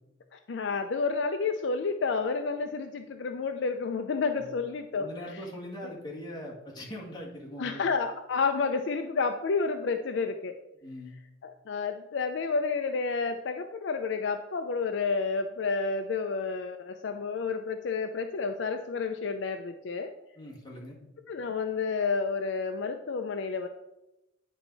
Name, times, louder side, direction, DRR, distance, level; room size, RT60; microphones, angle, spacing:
voice 1, 0.3-5.1 7.6-10.6 11.4-20.1 21.3-23.7, left 4 dB, 60° left, 6 dB, 0.4 m, -30 dB
voice 2, 5.0-7.8 10.8-11.2 20.4-21.0, left 1 dB, 20° left, -4 dB, 1.8 m, -41 dB
9.8 x 4.5 x 3.9 m, 0.92 s
head